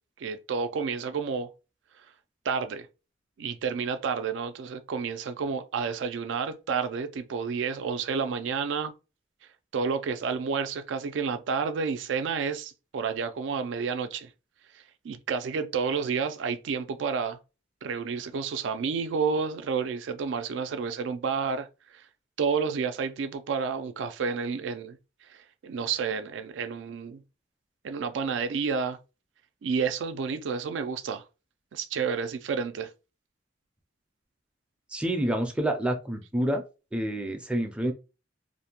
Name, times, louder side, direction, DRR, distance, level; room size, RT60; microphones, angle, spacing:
voice 1, 0.2-1.5 2.5-2.9 3.4-8.9 9.7-14.3 15.0-17.4 17.8-22.0 22.4-25.0 25.3-27.2 27.8-29.0 29.6-31.2 31.7-32.9, right 5 dB, 80° right, 0.4 m, -30 dB
voice 2, 34.9-36.6 36.9-37.9, right 1 dB, 5° right, 0.4 m, -28 dB
2.5 x 2.1 x 2.8 m
head